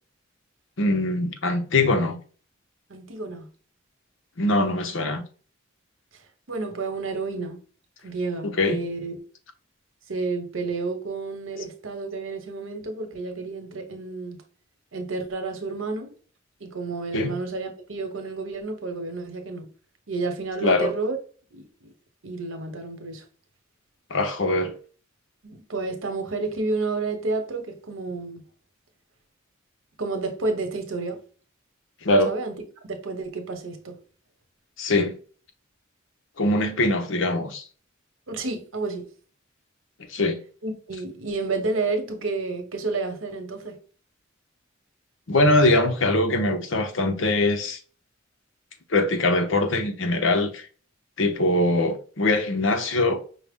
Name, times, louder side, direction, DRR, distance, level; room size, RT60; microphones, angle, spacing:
voice 1, 0.8-2.2 4.4-5.2 8.6-8.8 17.1-17.3 20.6-20.9 24.1-24.7 32.0-32.3 34.8-35.1 36.4-37.6 40.1-40.4 45.3-47.8 48.9-50.7 51.2-53.2, left 2 dB, 70° left, 0.8 m, -22 dB
voice 2, 2.9-3.5 6.5-7.6 8.0-9.2 10.1-14.4 14.9-16.1 16.6-19.7 20.1-21.2 21.5-21.9 22.2-23.2 25.4-28.4 30.0-31.2 32.2-32.6 32.9-34.0 38.3-39.1 40.6-43.8, right 3 dB, 90° right, 1.0 m, -30 dB
5.5 x 2.1 x 3.6 m
head